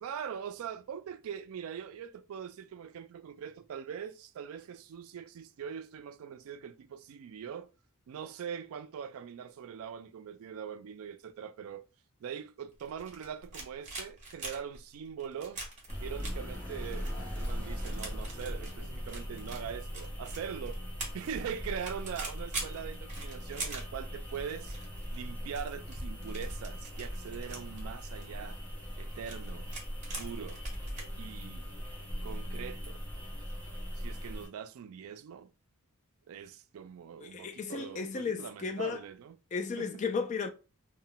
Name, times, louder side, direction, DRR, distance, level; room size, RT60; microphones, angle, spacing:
voice 1, 0.0-7.7 8.1-11.8 12.2-15.6 16.0-20.8 21.1-24.8 25.1-28.6 29.0-29.7 30.2-30.6 31.2-31.7 32.2-33.0 34.0-35.5 36.3-39.4 39.8-39.9, right 8 dB, 70° right, 0.3 m, -42 dB
sound 1, 12.8-31.0, right 3 dB, 35° right, 0.9 m, -44 dB
sound 2, 15.9-34.5, equal, 5° left, 0.7 m, -40 dB
voice 2, 37.2-39.0 39.5-40.5, left 5 dB, 35° left, 0.3 m, -34 dB
2.1 x 2.1 x 3.8 m
head